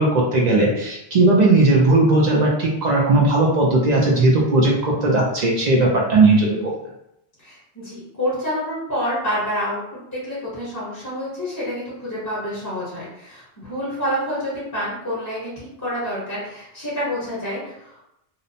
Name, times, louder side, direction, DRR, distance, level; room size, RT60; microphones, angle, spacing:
voice 1, 0.0-6.7, right 2 dB, 55° right, -3 dB, 0.5 m, -17 dB
voice 2, 7.4-18.0, equal, 20° left, -9 dB, 0.8 m, -28 dB
2.7 x 2.0 x 2.6 m, 0.82 s
omnidirectional pair, 1.1 m